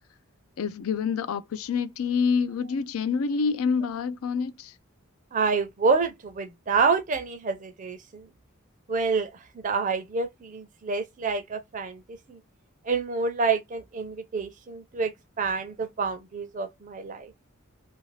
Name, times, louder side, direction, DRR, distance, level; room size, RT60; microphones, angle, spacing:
voice 1, 0.6-4.8, left 5 dB, 85° left, 0.4 m, -27 dB
voice 2, 5.3-8.3 8.9-12.4 12.8-17.3, right 4 dB, 40° right, 0.5 m, -28 dB
2.5 x 2.3 x 3.1 m
head